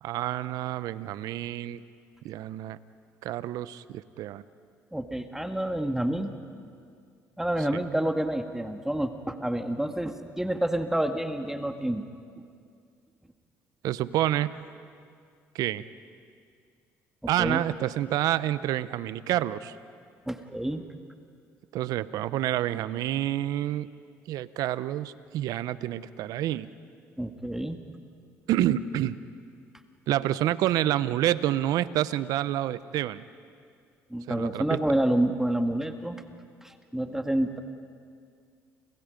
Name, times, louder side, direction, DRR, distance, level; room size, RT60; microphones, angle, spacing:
voice 1, 0.0-1.8 2.2-2.8 3.2-4.4 13.8-14.5 15.5-15.8 17.3-19.8 21.7-23.9 24.3-26.7 28.5-29.2 30.1-33.2 34.3-34.8, right 13 dB, 75° right, 15 dB, 0.8 m, -28 dB
voice 2, 4.9-6.3 7.4-12.0 17.4-17.6 20.3-20.9 27.2-27.8 34.1-36.2 36.6-37.6, right 1 dB, 5° right, 6 dB, 1.8 m, -28 dB
29.5 x 28.0 x 5.3 m, 2.2 s
supercardioid pair, 70°, 7 cm